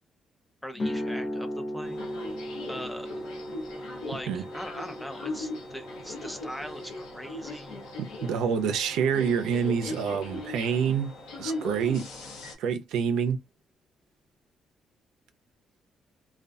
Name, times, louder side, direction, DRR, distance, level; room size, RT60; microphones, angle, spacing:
voice 1, 0.6-2.0 2.7-3.2 3.9-7.8, equal, 5° left, 0.7 m, -41 dB
sound 1, 0.7-8.8, equal, 50° left, 0.7 m, -38 dB
sound 2, 1.8-12.5, left 2 dB, 90° left, 0.8 m, -39 dB
voice 2, 8.0-11.1 11.4-12.0 12.6-13.4, right 7 dB, 90° right, 0.5 m, -27 dB
2.5 x 2.3 x 2.3 m
cardioid pair, 90°, 0 cm